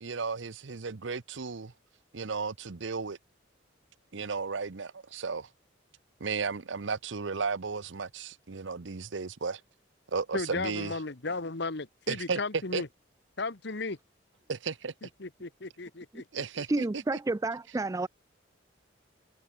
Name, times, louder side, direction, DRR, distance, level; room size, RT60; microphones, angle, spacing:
voice 1, 0.0-1.7 2.1-3.2 4.1-5.5 6.2-9.6 10.1-11.0 12.1-12.4 12.7-12.8 14.5-14.9 16.3-17.2, right 5 dB, 70° right, 0.8 m, -34 dB
voice 2, 10.3-12.9 13.4-14.0 15.2-16.4, left 3 dB, 60° left, 1.4 m, -35 dB
voice 3, 16.7-18.1, right 2 dB, 15° right, 0.3 m, -30 dB
head